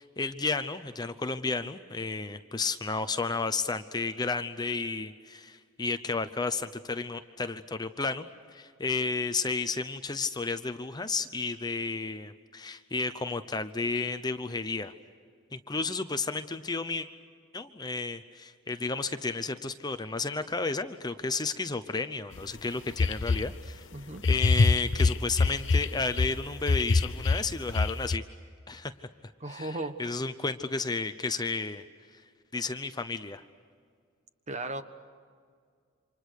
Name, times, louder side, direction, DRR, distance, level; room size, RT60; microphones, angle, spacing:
voice 1, 0.0-14.9 15.5-17.1 17.5-23.9 24.2-28.2 28.7-28.9 29.5-31.8 32.1-32.2 32.5-33.4, left 3 dB, 20° left, 10 dB, 0.8 m, -32 dB
sound 1, 22.4-22.5 23.0-23.5 24.2-26.3 26.7-28.2, left 3 dB, 60° left, 0.7 m, -24 dB
voice 2, 23.9-24.2 29.4-30.1 34.5-34.8, right 2 dB, 35° right, 9 dB, 1.3 m, -36 dB
28.5 x 26.5 x 6.5 m, 2.1 s
head